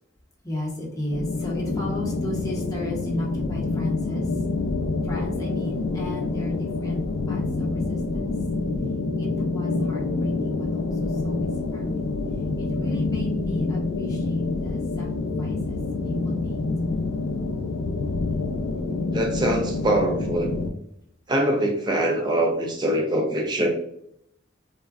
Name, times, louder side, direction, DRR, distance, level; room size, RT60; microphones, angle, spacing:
voice 1, 0.4-4.3 5.0-7.0 7.3-8.3 9.2-12.1 12.6-15.8 16.0-16.6, left 1 dB, 20° left, -3 dB, 0.7 m, -36 dB
sound 1, 1.1-20.7, left 3 dB, 90° left, 0.4 m, -27 dB
voice 2, 19.1-20.5 21.3-23.7, right 1 dB, 20° right, 2 dB, 0.5 m, -23 dB
3.6 x 2.1 x 2.3 m, 0.72 s
head